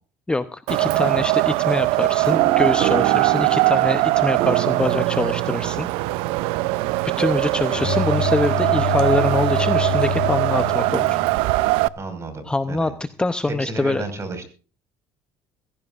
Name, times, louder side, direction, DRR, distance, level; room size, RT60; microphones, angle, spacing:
voice 1, 0.3-5.9 7.2-11.2 12.5-12.9 13.2-14.0, left 2 dB, 10° left, 11 dB, 0.7 m, -24 dB
Wind, 0.7-11.9, right 19 dB, 85° right, 0.6 m, -21 dB
sound 1, 2.3-7.8, right 13 dB, 65° right, 1.1 m, -28 dB
Bowed string instrument, 7.7-11.8, left 8 dB, 80° left, 3.6 m, -27 dB
voice 2, 12.0-12.9 13.5-14.5, right 2 dB, 30° right, 8 dB, 5.2 m, -32 dB
22.5 x 16.0 x 2.5 m, 0.38 s
cardioid pair, 115°, 9 cm